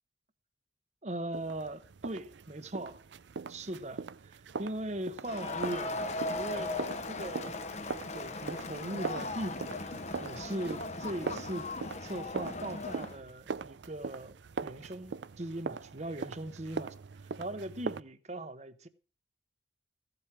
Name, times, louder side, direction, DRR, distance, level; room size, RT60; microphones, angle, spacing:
voice 1, 1.0-3.0 3.5-6.7 7.1-7.5 8.1-9.8 10.2-11.7 12.0-14.3 14.6-17.0 17.4-18.9, right 1 dB, 40° right, 1.0 m, -39 dB
sound 1, 1.3-18.0, right 4 dB, 75° right, 0.5 m, -42 dB
Crowd, 5.2-13.2, left 3 dB, 40° left, 0.9 m, -38 dB
15.0 x 7.9 x 6.0 m
head